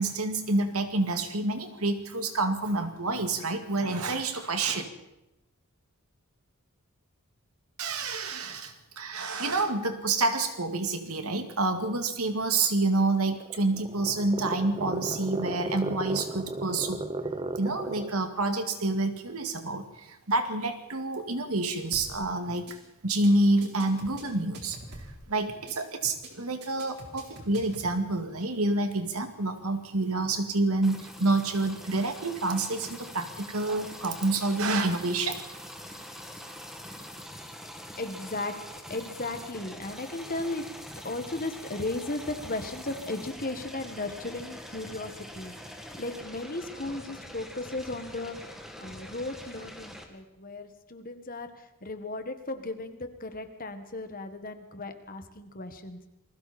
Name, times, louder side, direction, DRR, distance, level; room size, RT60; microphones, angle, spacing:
voice 1, 0.0-4.9 7.8-17.0 17.6-19.8 20.3-22.6 23.0-24.8 25.3-35.4, right 2 dB, 80° right, 7 dB, 2.3 m, -28 dB
sound 1, 13.3-18.2, right 2 dB, 25° right, 0.8 m, -35 dB
sound 2, 21.9-22.2 22.5-22.7 23.0-23.3 23.6-25.2 25.5-25.7 26.0-26.3 26.6-27.9, right 1 dB, 50° right, 4.3 m, -45 dB
sound 3, 30.8-50.0, equal, ahead, 2.3 m, -44 dB
voice 2, 38.0-38.5 38.9-40.6 41.0-56.0, left 2 dB, 40° left, 7 dB, 1.8 m, -36 dB
28.0 x 20.5 x 4.4 m, 0.92 s
head